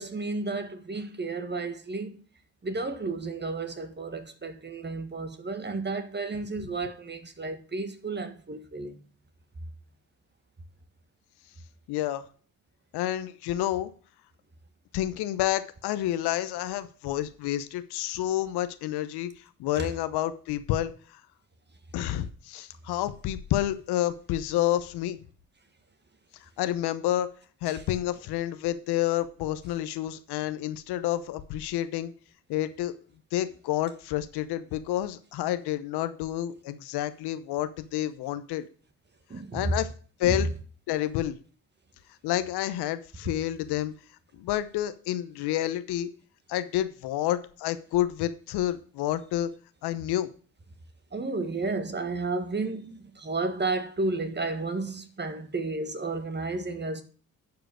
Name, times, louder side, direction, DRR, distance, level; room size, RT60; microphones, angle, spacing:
voice 1, 0.0-2.2 2.6-9.0 19.8-19.9 27.7-27.8 39.3-39.7 40.2-40.4 51.1-57.0, right 3 dB, 25° right, 1.6 m, -32 dB
voice 2, 11.9-12.2 12.9-13.9 14.9-21.2 21.9-25.2 26.4-27.3 27.6-32.1 32.5-32.9 33.3-38.7 39.5-39.9 40.2-40.5 40.9-41.4 42.2-43.9 44.3-46.1 46.5-49.5 49.8-50.3, left 13 dB, 70° left, 0.9 m, -29 dB
10.5 x 4.8 x 6.3 m
hypercardioid pair, 50°, 41 cm